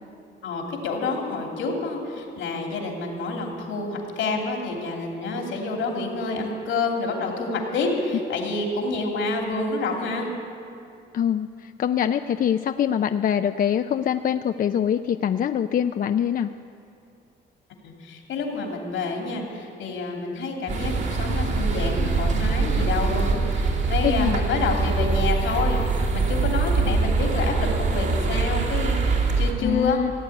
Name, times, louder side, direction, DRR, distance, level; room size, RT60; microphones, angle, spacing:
voice 1, 0.4-10.3 17.8-25.8 26.1-29.0 29.4-30.0, left 3 dB, 80° left, 2 dB, 2.8 m, -28 dB
voice 2, 11.1-16.5 24.0-24.4 29.6-30.1, left 9 dB, 45° left, 9 dB, 0.4 m, -24 dB
sound 1, 20.7-29.5, right 4 dB, 65° right, 2.6 m, -23 dB
16.5 x 8.1 x 9.8 m, 2.5 s
cardioid pair, 90°, 20 cm